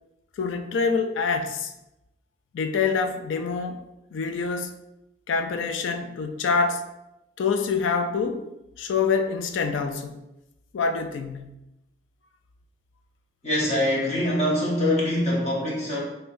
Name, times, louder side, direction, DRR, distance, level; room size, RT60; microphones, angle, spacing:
voice 1, 0.4-1.7 2.5-3.8 4.1-4.8 5.3-6.8 7.4-8.5 8.8-10.2 10.7-11.5, left 5 dB, 85° left, 7 dB, 0.4 m, -26 dB
voice 2, 13.4-16.0, left 1 dB, 35° left, -4 dB, 0.9 m, -24 dB
5.4 x 2.1 x 2.5 m, 0.91 s
head